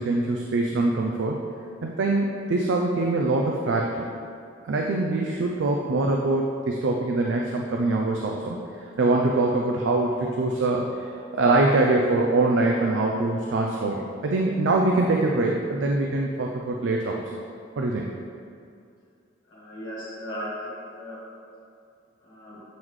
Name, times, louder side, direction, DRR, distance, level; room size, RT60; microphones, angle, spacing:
voice 1, 0.0-1.4 1.8-4.1 4.6-8.6 9.0-17.2 17.8-18.1, right 2 dB, 75° right, 0 dB, 0.4 m, -23 dB
voice 2, 19.5-21.2 22.2-22.6, equal, 80° left, -8 dB, 1.3 m, -37 dB
8.1 x 3.7 x 3.1 m, 2.3 s
head